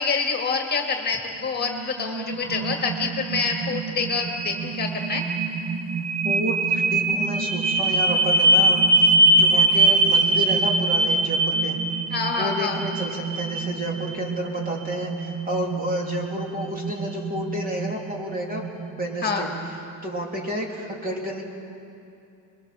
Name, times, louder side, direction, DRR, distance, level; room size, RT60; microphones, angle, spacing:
voice 1, 0.0-5.2 12.1-12.8 19.2-19.5, left 4 dB, 30° left, 3 dB, 1.8 m, -26 dB
sound 1, 1.6-19.7, right 2 dB, 55° right, 1.5 m, -23 dB
voice 2, 6.2-11.8 12.3-18.6 19.0-19.5 20.0-21.4, equal, 25° right, 0 dB, 3.2 m, -31 dB
28.0 x 22.0 x 6.8 m, 2.6 s
cardioid pair, 160°, 33 cm